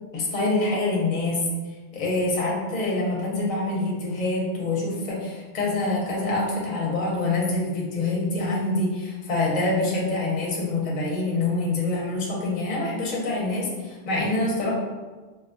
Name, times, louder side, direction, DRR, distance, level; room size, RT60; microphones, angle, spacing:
voice 1, 0.1-1.4 1.9-14.7, left 2 dB, 45° left, -4 dB, 0.7 m, -26 dB
3.4 x 2.2 x 2.5 m, 1.3 s
omnidirectional pair, 1.1 m